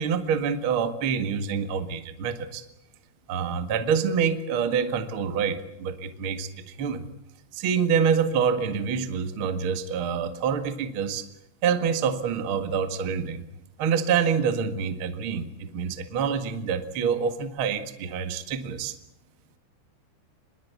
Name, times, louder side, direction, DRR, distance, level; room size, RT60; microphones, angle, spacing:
voice 1, 0.0-2.6 3.3-7.0 7.5-11.2 11.6-13.4 13.8-18.9, right 6 dB, 75° right, 9 dB, 1.2 m, -26 dB
26.0 x 21.5 x 8.3 m, 0.82 s
omnidirectional pair, 5.5 m